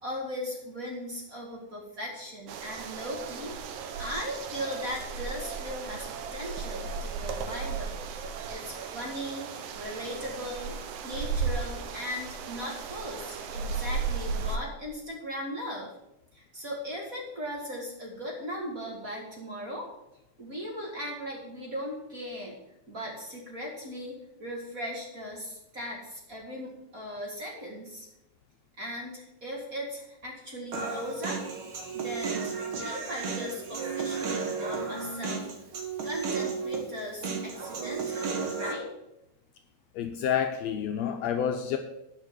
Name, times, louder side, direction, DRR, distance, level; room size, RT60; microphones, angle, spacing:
voice 1, 0.0-3.5 4.0-9.5 9.7-10.8 11.0-15.9 16.3-19.9 20.4-22.6 22.9-28.1 28.8-31.4 31.9-35.5 36.0-38.9, equal, 30° right, -2 dB, 1.9 m, -38 dB
sound 1, 2.5-14.6, right 5 dB, 80° right, 2.3 m, -35 dB
Human voice, 30.7-38.7, right 5 dB, 55° right, 1.7 m, -33 dB
voice 2, 39.9-41.8, left 8 dB, 75° left, 5 dB, 1.7 m, -29 dB
9.8 x 5.5 x 7.5 m, 0.88 s
omnidirectional pair, 3.4 m